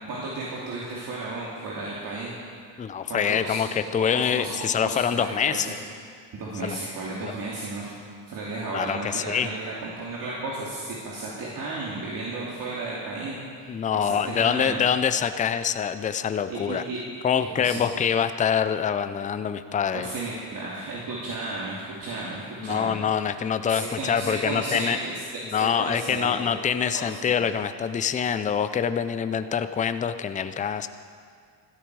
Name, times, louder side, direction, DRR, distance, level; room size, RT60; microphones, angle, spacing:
voice 1, 0.1-2.3 3.1-5.8 6.3-7.9 8.3-14.8 16.5-17.0 17.4-17.8 19.9-23.0 23.7-26.5 26.9-27.4, right 2 dB, 50° right, -6 dB, 2.7 m, -34 dB
voice 2, 2.8-5.7 6.6-6.8 7.2-7.3 8.7-9.5 13.7-16.8 17.2-20.1 22.6-25.0 25.5-30.9, left 7 dB, 20° left, 11 dB, 0.5 m, -25 dB
16.5 x 12.5 x 4.8 m, 2.1 s
cardioid pair, 115°, 42 cm